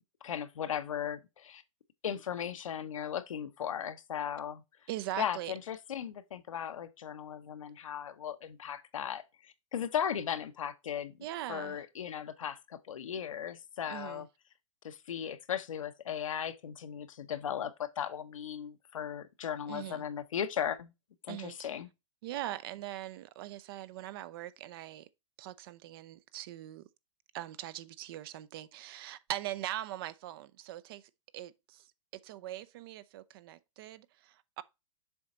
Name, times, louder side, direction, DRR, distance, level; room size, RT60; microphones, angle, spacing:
voice 1, 0.2-1.6 2.0-4.6 5.2-11.1 11.5-14.3 14.8-20.9 21.2-21.9, left 9 dB, 85° left, 0.9 m, -37 dB
voice 2, 4.9-5.5 11.2-11.8 13.9-14.3 19.7-20.0 21.3-21.7 22.2-25.1 25.4-26.9 27.3-31.0 31.3-31.9 32.2-34.6, right 14 dB, 45° right, 0.5 m, -41 dB
7.0 x 3.9 x 4.2 m
hypercardioid pair, 145°, 16 cm